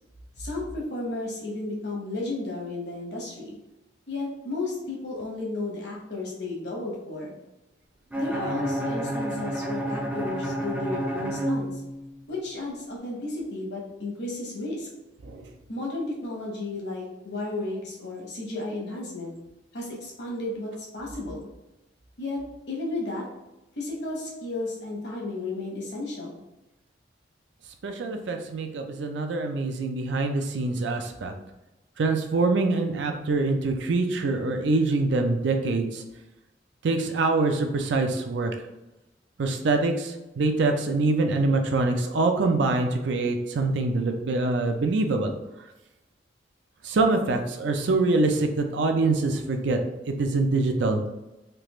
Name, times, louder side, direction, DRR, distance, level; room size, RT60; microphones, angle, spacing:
voice 1, 0.4-3.6 4.1-7.4 8.2-11.8 12.3-14.9 15.7-19.3 19.7-21.4 22.2-22.4 22.7-23.3 23.8-26.4, left 2 dB, 65° left, -2 dB, 1.0 m, -33 dB
Bowed string instrument, 8.1-12.2, right 1 dB, 10° right, 0.4 m, -30 dB
voice 2, 27.8-31.3 32.0-36.0 36.8-38.5 39.4-45.3 46.8-49.8 50.1-51.0, right 3 dB, 75° right, 5 dB, 0.4 m, -24 dB
3.3 x 2.4 x 3.0 m, 1.0 s
head